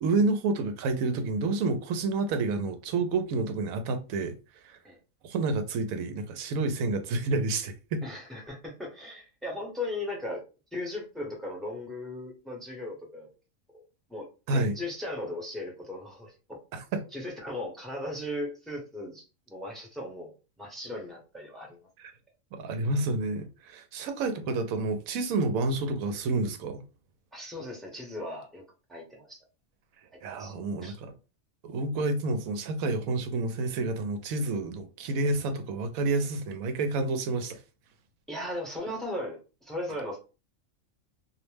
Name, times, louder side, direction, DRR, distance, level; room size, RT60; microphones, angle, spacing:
voice 1, 0.0-4.4 4.6-4.8 5.2-8.0 14.5-14.8 16.7-17.0 22.0-22.1 22.5-26.8 30.2-31.1 31.6-37.6, right 3 dB, 85° right, 1.0 m, -29 dB
voice 2, 8.0-10.4 10.7-13.3 13.7-13.8 14.1-16.6 17.1-21.8 27.3-28.6 28.9-29.4 30.4-31.0 38.3-40.2, left 1 dB, ahead, 0.6 m, -37 dB
2.6 x 2.1 x 3.1 m
omnidirectional pair, 1.4 m